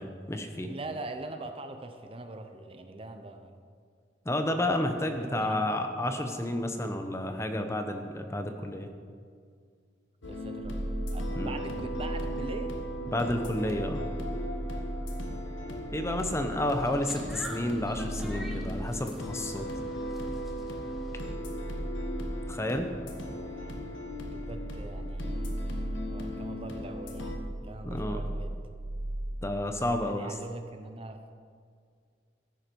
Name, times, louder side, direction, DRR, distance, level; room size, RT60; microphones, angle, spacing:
voice 1, 0.0-0.7 4.2-8.9 11.4-11.6 13.1-14.0 15.9-19.6 22.5-22.9 27.8-28.2 29.4-30.3, left 1 dB, 15° left, 6 dB, 0.8 m, -31 dB
voice 2, 0.7-3.6 5.0-5.6 10.3-12.7 23.0-25.6 26.1-28.6 30.0-31.2, right 2 dB, 30° right, 7 dB, 0.7 m, -43 dB
sound 1, 10.2-27.4, equal, 85° left, 1.7 m, -38 dB
sound 2, 10.6-30.1, right 1 dB, 80° right, 0.8 m, -38 dB
sound 3, 16.5-21.3, right 1 dB, ahead, 1.3 m, -47 dB
14.0 x 10.5 x 4.6 m, 2.1 s
head